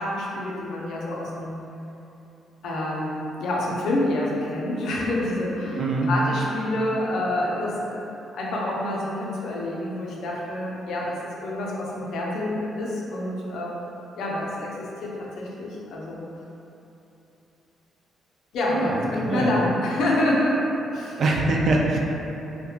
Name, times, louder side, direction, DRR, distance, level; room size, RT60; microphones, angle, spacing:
voice 1, 0.0-1.6 2.6-8.0 8.3-13.9 14.2-16.2 18.5-21.2, left 1 dB, 75° left, -4 dB, 0.5 m, -27 dB
voice 2, 5.8-6.1 18.7-19.6 21.2-22.0, right 2 dB, 55° right, -1 dB, 0.3 m, -23 dB
2.2 x 2.1 x 3.1 m, 2.9 s
cardioid pair, 90°, 0 cm